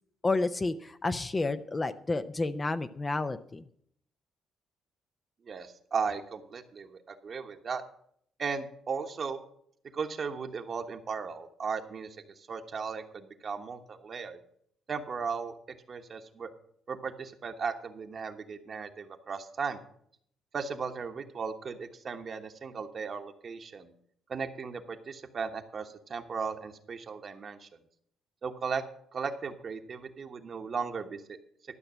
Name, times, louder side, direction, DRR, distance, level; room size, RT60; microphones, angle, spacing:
voice 1, 0.2-3.6, left 3 dB, 25° left, 11 dB, 0.6 m, -30 dB
voice 2, 5.4-7.8 8.4-9.4 9.9-14.4 14.9-15.6 15.9-16.5 16.9-19.8 20.5-23.9 24.3-27.7 28.4-28.8 29.1-31.4, right 5 dB, 45° right, 6 dB, 1.1 m, -36 dB
12.5 x 5.9 x 7.2 m, 0.67 s
cardioid pair, 90°, 0 cm